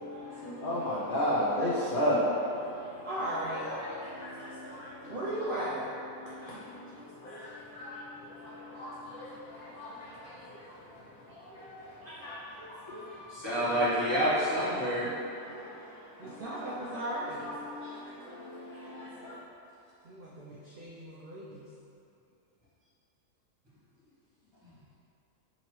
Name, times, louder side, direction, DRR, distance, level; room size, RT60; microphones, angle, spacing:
voice 1, 0.0-3.1 3.5-5.2 6.2-13.6 15.4-16.9 17.4-19.4, equal, 65° left, -8 dB, 0.5 m, -36 dB
voice 2, 3.0-3.7 5.1-5.9 16.2-17.5 20.0-21.7, right 1 dB, 75° right, -7 dB, 0.5 m, -36 dB
voice 3, 13.3-15.0 20.5-20.6 24.6-24.8, equal, 20° right, -11 dB, 0.8 m, -28 dB
3.9 x 2.9 x 3.0 m, 2.7 s
omnidirectional pair, 1.5 m